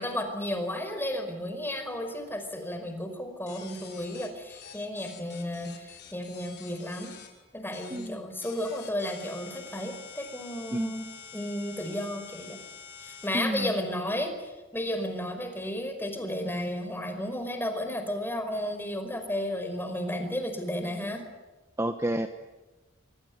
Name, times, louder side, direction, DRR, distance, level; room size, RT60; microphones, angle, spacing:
voice 1, 0.0-7.1 7.5-11.0 11.3-12.6 13.0-21.2, left 1 dB, 10° left, 6 dB, 5.1 m, -33 dB
sound 1, 3.5-7.3 7.7-8.1 8.4-13.3, left 7 dB, 55° left, 5.7 m, -47 dB
voice 2, 7.9-8.2 10.7-10.9 13.3-13.8 21.8-22.3, right 1 dB, 15° right, 8 dB, 1.1 m, -30 dB
25.0 x 25.0 x 9.5 m, 1.1 s
head